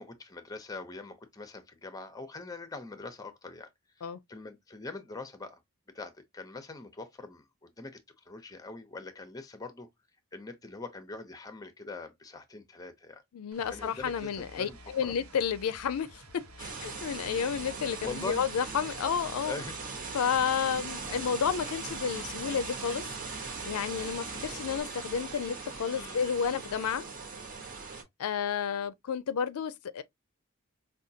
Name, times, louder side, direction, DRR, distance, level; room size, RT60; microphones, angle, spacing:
voice 1, 0.0-3.7 4.0-5.6 5.9-8.0 8.3-9.9 10.3-13.2 13.7-15.1 18.0-18.4 19.4-19.7 25.9-26.2, left 3 dB, 15° left, 0.6 m, -43 dB
voice 2, 13.3-16.2 16.6-19.5 20.1-23.0 23.4-27.0 28.2-30.0, left 7 dB, 80° left, 0.4 m, -31 dB
sound 1, 13.5-24.8, equal, 80° right, 1.1 m, -52 dB
sound 2, 16.6-28.0, right 4 dB, 40° right, 1.1 m, -40 dB
4.9 x 2.3 x 2.7 m
head